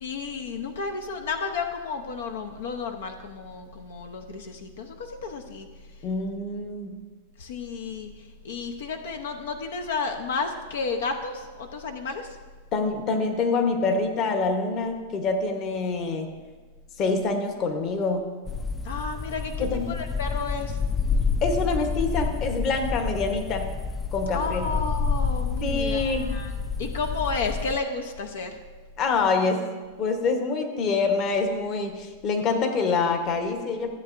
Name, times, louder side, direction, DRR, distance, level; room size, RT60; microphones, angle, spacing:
voice 1, 0.0-5.7 7.4-8.1 8.4-12.3 18.8-20.8 24.3-26.5 26.8-28.5, left 4 dB, 85° left, 5 dB, 0.7 m, -32 dB
voice 2, 6.0-7.0 12.7-16.3 17.0-18.3 19.6-19.9 21.4-23.7 24.1-24.7 25.6-26.3 29.0-29.7 30.0-34.0, left 4 dB, 35° left, 5 dB, 1.0 m, -26 dB
sound 1, 18.5-27.8, left 4 dB, 15° left, 0.3 m, -29 dB
14.0 x 7.8 x 2.6 m, 1.4 s
supercardioid pair, 140°, 0 cm